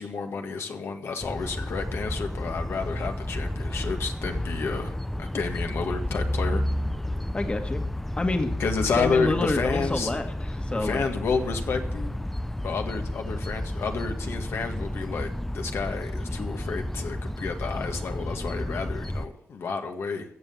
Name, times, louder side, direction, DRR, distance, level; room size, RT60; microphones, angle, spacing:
voice 1, 0.0-6.6 8.6-10.1 10.7-12.2 12.6-15.3 15.5-20.3, left 5 dB, 75° left, 4 dB, 1.8 m, -30 dB
sound 1, 1.2-19.3, left 1 dB, 5° left, 0.5 m, -31 dB
voice 2, 7.3-7.8 8.2-8.5 9.0-11.0, left 2 dB, 25° left, 5 dB, 1.7 m, -28 dB
15.0 x 7.7 x 7.2 m, 0.71 s
cardioid pair, 105°, 4 cm